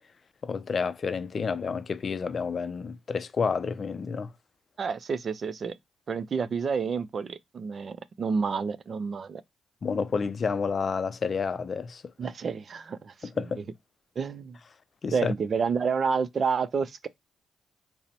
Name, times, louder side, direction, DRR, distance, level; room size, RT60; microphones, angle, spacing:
voice 1, 0.4-4.3 9.8-12.1 13.2-13.6 15.0-15.3, left 5 dB, 50° left, 0.4 m, -30 dB
voice 2, 4.8-5.7 6.1-9.4 12.2-13.3 14.2-14.6 15.1-17.1, right 5 dB, 55° right, 0.4 m, -29 dB
3.9 x 2.0 x 4.1 m
supercardioid pair, 50°, 0 cm